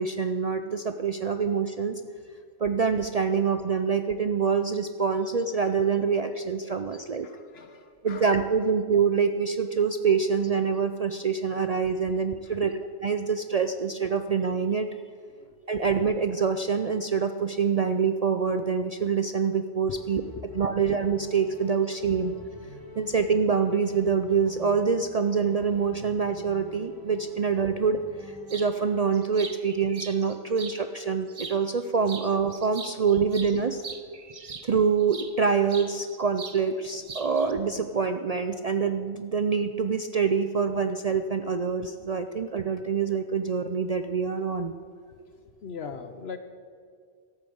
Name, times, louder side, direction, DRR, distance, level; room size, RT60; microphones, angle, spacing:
voice 1, 0.0-2.0 2.6-7.3 8.0-12.7 13.0-14.9 15.7-20.2 20.5-22.4 23.0-33.8 34.6-44.8, right 6 dB, 50° right, 8 dB, 0.5 m, -25 dB
voice 2, 7.2-8.4 12.1-12.7 15.4-15.6 19.9-20.0 20.3-20.6 45.1-46.4, left 6 dB, 65° left, 9 dB, 1.0 m, -41 dB
sound 1, 19.9-29.3, left 2 dB, 20° left, 1.5 m, -47 dB
sound 2, 28.5-28.7 29.1-30.8 31.3-31.8 32.1-35.3 35.7-36.6 36.9-37.5, right 4 dB, 35° right, 0.8 m, -41 dB
13.0 x 8.9 x 7.7 m, 2.1 s
omnidirectional pair, 1.2 m